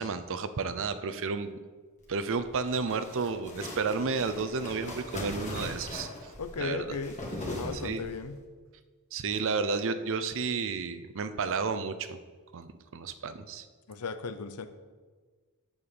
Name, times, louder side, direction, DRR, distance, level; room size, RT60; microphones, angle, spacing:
voice 1, 0.0-1.6 2.1-6.3 6.6-6.8 7.7-8.1 9.1-12.2 12.5-13.7, right 4 dB, 60° right, 12 dB, 0.6 m, -32 dB
sound 1, 2.2-8.3, left 1 dB, 35° left, 1.7 m, -40 dB
voice 2, 6.4-7.1 7.5-8.4 13.9-14.7, left 4 dB, 85° left, 11 dB, 0.7 m, -35 dB
6.9 x 5.5 x 6.8 m, 1.4 s
head